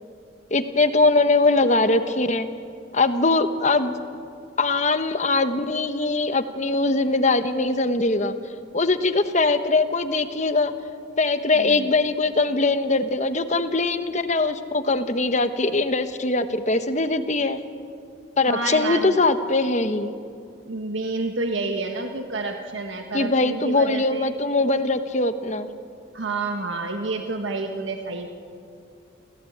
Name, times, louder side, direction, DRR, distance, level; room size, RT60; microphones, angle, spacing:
voice 1, 0.5-2.5 2.9-3.9 4.6-8.3 8.7-10.7 11.2-17.6 18.4-20.1 23.1-25.7, left 3 dB, 40° left, 9 dB, 1.1 m, -21 dB
voice 2, 11.5-11.9 18.4-19.2 20.6-24.3 26.1-28.3, right 3 dB, 80° right, 4 dB, 1.5 m, -29 dB
29.0 x 15.5 x 8.7 m, 2.5 s
head